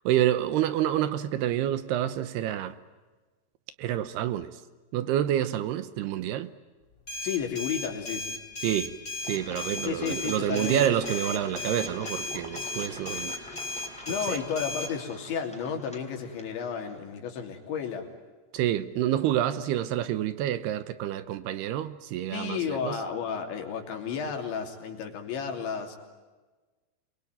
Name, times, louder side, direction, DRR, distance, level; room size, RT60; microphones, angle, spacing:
voice 1, 0.1-2.7 3.8-4.5 4.9-6.5 8.6-8.9 9.2-13.4 14.1-14.4 18.5-23.0, right 11 dB, 75° right, 2.8 m, -28 dB
sound 1, 7.1-14.9, left 2 dB, 20° left, 4.0 m, -35 dB
voice 2, 7.2-8.3 9.9-11.0 14.1-18.1 22.3-26.0, left 7 dB, 85° left, 5.4 m, -32 dB
Engine, 9.2-17.0, left 1 dB, ahead, 3.2 m, -44 dB
28.0 x 22.5 x 9.2 m
omnidirectional pair, 5.1 m